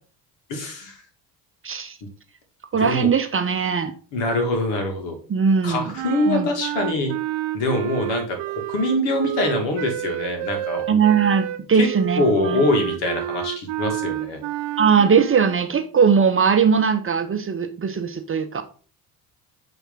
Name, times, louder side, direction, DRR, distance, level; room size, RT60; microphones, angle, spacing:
voice 1, 0.5-1.0 2.8-3.1 4.1-5.2 5.6-7.1 7.5-10.8 11.8-11.9 12.2-14.4, left 2 dB, 65° left, 3 dB, 2.2 m, -24 dB
voice 2, 1.6-2.0 2.7-3.9 5.3-5.9 6.3-6.5 10.9-12.6 14.8-18.6, right 6 dB, 25° right, 8 dB, 0.8 m, -20 dB
sound 1, 5.9-15.6, right 14 dB, 60° right, 0.6 m, -30 dB
8.1 x 3.6 x 3.6 m, 0.40 s
hypercardioid pair, 60°, 47 cm